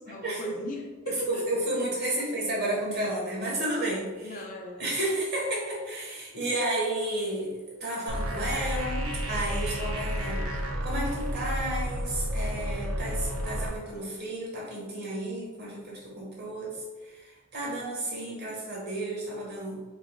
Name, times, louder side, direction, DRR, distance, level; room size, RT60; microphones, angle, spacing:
voice 1, 0.0-1.6 4.2-4.9 10.5-10.6, left 1 dB, 40° left, 0 dB, 0.5 m, -37 dB
voice 2, 1.1-4.4 4.8-16.8 17.0-19.8, right 1 dB, 50° right, -4 dB, 1.3 m, -32 dB
sound 1, 8.1-13.7, equal, 80° right, 0.6 m, -31 dB
4.5 x 3.4 x 2.3 m, 1.3 s
head